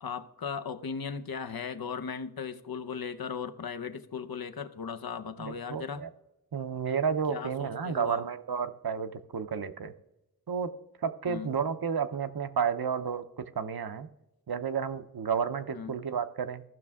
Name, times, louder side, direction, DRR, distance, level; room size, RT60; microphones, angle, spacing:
voice 1, 0.0-6.0 7.3-8.2 11.2-11.5 15.7-15.9, left 6 dB, 70° left, 9 dB, 0.7 m, -37 dB
voice 2, 5.4-6.1 6.5-9.9 10.5-10.7 11.0-14.1 14.5-16.6, right 6 dB, 75° right, 9 dB, 0.7 m, -31 dB
15.0 x 6.0 x 3.5 m, 0.93 s
wide cardioid pair, 55°, 37 cm